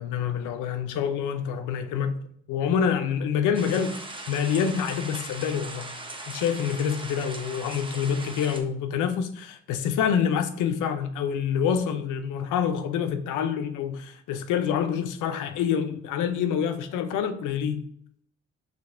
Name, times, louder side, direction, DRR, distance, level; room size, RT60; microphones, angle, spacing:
voice 1, 0.0-2.2 2.5-4.0 4.3-5.9 6.3-17.9, left 7 dB, 90° left, 0.6 m, -27 dB
sound 1, 3.5-8.6, right 2 dB, 15° right, 0.7 m, -39 dB
5.8 x 3.1 x 2.5 m
cardioid pair, 90°, 30 cm